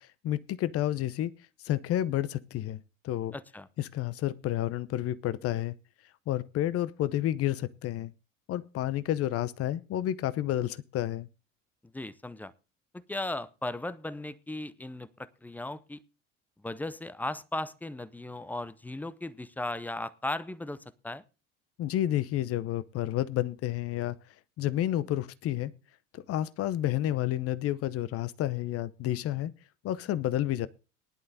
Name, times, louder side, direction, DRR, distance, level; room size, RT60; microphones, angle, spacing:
voice 1, 0.0-1.3 1.6-3.3 3.8-5.8 6.3-8.1 8.5-11.3 21.8-24.2 24.6-25.7 26.1-29.5 29.8-30.7, left 13 dB, 35° left, 17 dB, 0.8 m, -30 dB
voice 2, 3.3-3.7 11.9-12.5 13.1-16.0 16.6-21.2, left 2 dB, 5° left, 17 dB, 0.5 m, -37 dB
19.0 x 11.0 x 2.7 m, 0.32 s
figure-of-eight pair, 70°, 39 cm